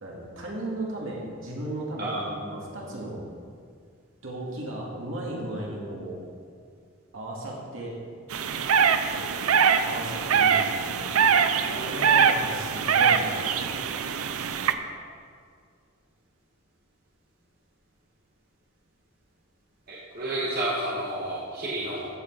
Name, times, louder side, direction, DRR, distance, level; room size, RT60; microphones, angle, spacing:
voice 1, 0.0-3.2 4.2-6.2 7.1-8.0 9.8-11.1 11.8-14.7, right 1 dB, 70° right, -3 dB, 2.2 m, -36 dB
sound 1, 8.3-14.7, right 7 dB, 85° right, 0.5 m, -23 dB
voice 2, 11.7-12.1 19.9-22.1, right 1 dB, 45° right, -6 dB, 1.7 m, -31 dB
13.5 x 6.3 x 4.7 m, 2.1 s
head